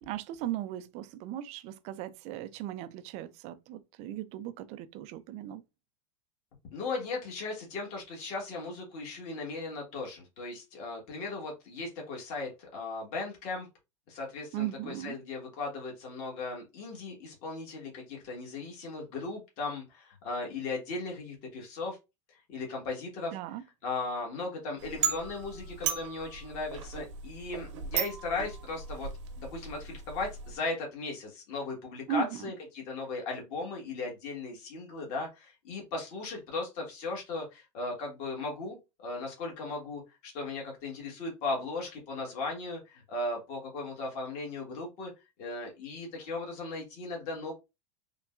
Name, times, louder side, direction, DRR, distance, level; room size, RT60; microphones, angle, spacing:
voice 1, 0.0-5.6 14.5-15.2 23.3-23.6 32.1-32.5, right 10 dB, 45° right, 0.4 m, -37 dB
voice 2, 6.7-13.7 14.1-22.0 22.3-23.4 23.8-29.1 29.4-45.1 45.4-47.5, left 3 dB, 50° left, 1.4 m, -37 dB
sound 1, 24.8-30.6, right 8 dB, 80° right, 0.8 m, -36 dB
3.7 x 2.2 x 2.3 m
hypercardioid pair, 115°, 15 cm